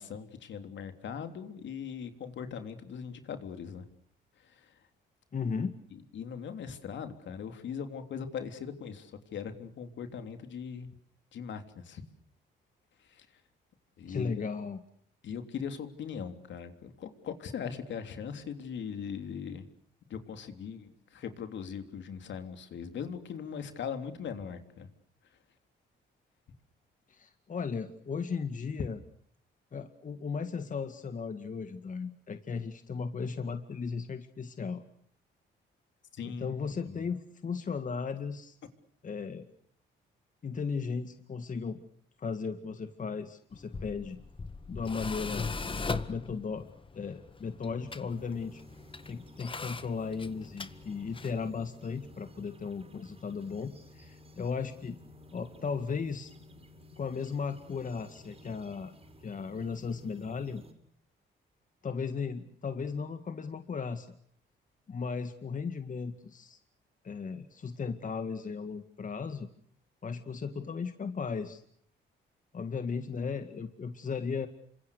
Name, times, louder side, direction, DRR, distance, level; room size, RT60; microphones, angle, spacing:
voice 1, 0.0-3.8 4.5-4.7 5.9-10.9 11.3-12.0 13.1-13.3 14.0-14.4 15.2-19.7 20.1-24.9 36.1-36.5 36.8-37.1, left 7 dB, 65° left, 7 dB, 3.5 m, -40 dB
voice 2, 5.3-5.7 14.1-14.8 27.1-29.0 29.7-34.8 36.2-38.6 39.0-39.5 40.4-41.8 42.2-44.2 44.7-48.6 49.1-55.0 55.3-56.3 57.0-58.9 59.2-60.6 61.8-64.1 64.9-66.6 67.0-69.5 70.0-71.6 72.5-74.5, left 5 dB, 40° left, 8 dB, 2.0 m, -36 dB
Tools, 43.5-51.5, left 4 dB, 25° left, 1.7 m, -40 dB
sound 1, 48.1-60.7, left 1 dB, 30° right, 6.3 m, -54 dB
29.0 x 26.0 x 6.7 m, 0.64 s
cardioid pair, 90°, 20 cm